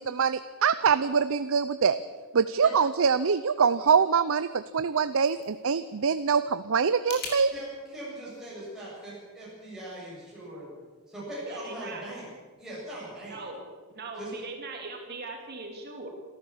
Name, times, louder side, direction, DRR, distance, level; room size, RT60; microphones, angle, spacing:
voice 1, 0.0-2.0 2.3-7.5, right 6 dB, 65° right, 13 dB, 0.6 m, -24 dB
sound 1, 4.8-7.4, left 4 dB, 50° left, 5.3 m, -43 dB
voice 2, 7.5-10.7 11.1-12.2 12.6-13.4 14.2-14.3, right 1 dB, ahead, -8 dB, 7.6 m, -40 dB
voice 3, 11.5-12.1 13.3-13.7 13.9-16.1, right 3 dB, 45° right, 2 dB, 2.9 m, -40 dB
27.0 x 13.5 x 7.3 m, 1.5 s
head